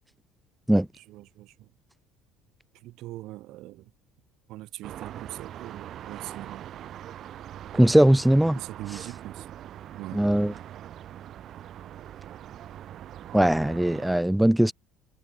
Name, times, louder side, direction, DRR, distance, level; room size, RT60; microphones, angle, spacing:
voice 1, 1.0-1.7 2.7-3.9 4.5-6.7 8.4-9.5 9.9-10.2, right 17 dB, 65° right, 7.2 m, -41 dB
sound 1, 4.8-14.2, right 11 dB, 50° right, 2.6 m, -42 dB
voice 2, 7.7-8.6 10.1-10.5 13.3-14.7, right 1 dB, 5° right, 0.6 m, -20 dB
cardioid pair, 110°, 0 cm